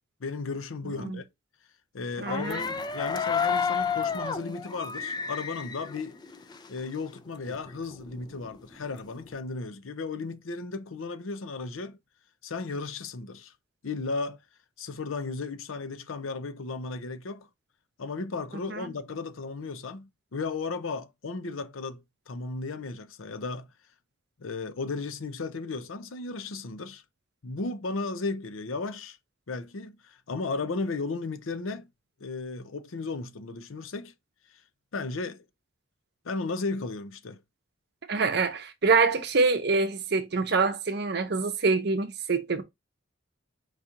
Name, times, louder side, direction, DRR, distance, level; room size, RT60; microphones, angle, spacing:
voice 1, 0.2-1.3 1.9-6.2 6.7-12.0 12.4-13.5 13.8-14.4 14.8-17.5 18.0-23.7 24.4-27.0 27.4-29.2 29.5-31.9 32.2-34.1 34.9-35.4 36.2-37.4, left 3 dB, 85° left, 0.6 m, -35 dB
voice 2, 0.9-1.2 2.2-2.7 18.7-18.8 38.1-42.6, right 4 dB, 55° right, 0.7 m, -25 dB
sound 1, 2.2-6.8 7.2-7.3 7.5-9.3, left 6 dB, 20° left, 0.4 m, -31 dB
4.8 x 2.9 x 3.7 m
head